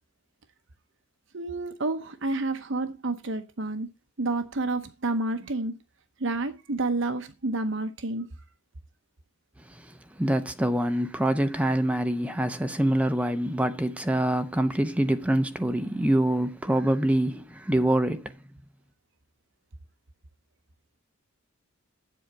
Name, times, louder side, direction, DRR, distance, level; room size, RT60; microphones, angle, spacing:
voice 1, 1.3-3.9 4.2-5.8 6.2-8.3, right 2 dB, 60° right, 0.9 m, -29 dB
voice 2, 10.2-18.4, right 1 dB, 5° right, 0.7 m, -25 dB
8.6 x 7.8 x 4.6 m
head